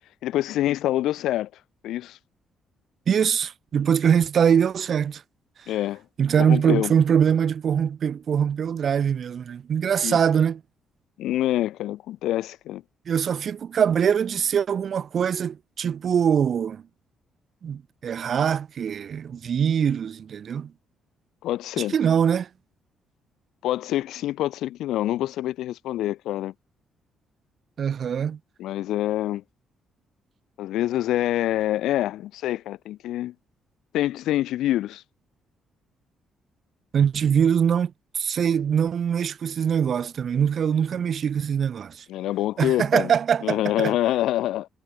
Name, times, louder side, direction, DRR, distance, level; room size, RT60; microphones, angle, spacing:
voice 1, 0.2-1.5 1.8-2.2 5.7-6.0 6.4-6.9 10.0-10.2 11.2-12.8 21.4-21.9 23.6-26.5 28.6-29.4 30.6-33.3 33.9-35.0 42.1-43.1 43.4-44.7, left 14 dB, 85° left, 3.0 m, -26 dB
voice 2, 3.1-5.2 5.6-5.7 6.2-10.6 13.1-16.8 17.6-20.7 21.8-22.5 27.8-28.4 36.9-42.0 42.6-43.9, right 8 dB, 55° right, 8.0 m, -23 dB
cardioid pair, 90°, 0 cm